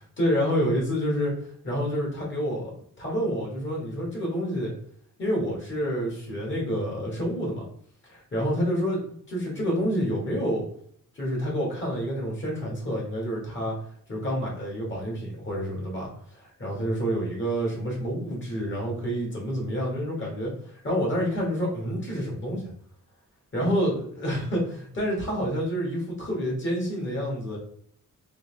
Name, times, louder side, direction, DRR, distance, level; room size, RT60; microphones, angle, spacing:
voice 1, 0.0-4.7 5.2-7.7 8.0-9.0 9.3-10.7 11.1-13.8 14.1-22.7 23.5-27.6, equal, 35° left, -2 dB, 1.7 m, -28 dB
3.9 x 2.9 x 3.3 m, 0.64 s
wide cardioid pair, 135°, 32 cm